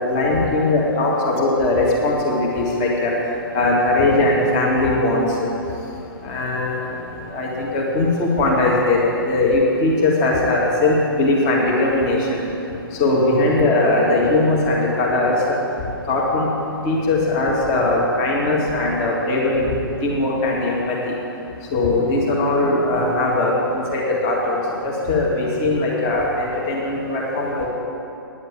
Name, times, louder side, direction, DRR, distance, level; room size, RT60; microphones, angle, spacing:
voice 1, 0.0-3.1 3.5-5.5 6.2-6.9 7.3-12.4 13.0-15.3 16.1-16.5 16.8-19.5 20.0-21.0 21.7-27.7, left 2 dB, 30° left, -3 dB, 2.0 m, -19 dB
10.0 x 7.9 x 8.9 m, 2.9 s
figure-of-eight pair, 120°, 12 cm